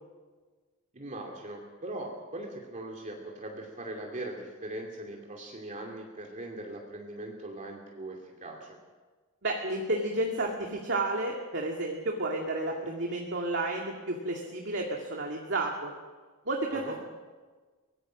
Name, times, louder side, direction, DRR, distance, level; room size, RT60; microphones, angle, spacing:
voice 1, 0.9-8.8 16.7-16.9, right 1 dB, 35° right, 0 dB, 2.6 m, -40 dB
voice 2, 9.4-15.9 16.5-16.9, right 2 dB, 60° right, 0 dB, 2.3 m, -31 dB
24.0 x 19.5 x 6.4 m, 1.4 s
head